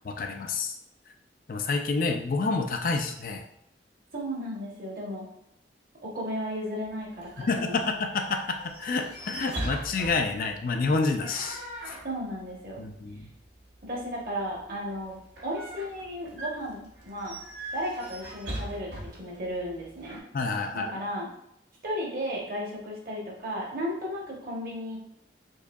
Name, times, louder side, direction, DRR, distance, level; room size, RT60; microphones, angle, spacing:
voice 1, 0.0-0.7 1.5-3.4 7.4-11.6 11.9-12.0 12.8-13.3 20.3-21.0, left 3 dB, 50° left, 4 dB, 0.4 m, -28 dB
voice 2, 4.1-5.3 6.0-7.8 12.0-12.8 13.8-17.4 17.7-20.2 20.7-21.3 21.8-25.0, equal, 55° right, -3 dB, 1.0 m, -34 dB
sound 1, 6.8-20.2, right 1 dB, 90° right, 0.8 m, -41 dB
4.6 x 2.6 x 2.3 m, 0.76 s
head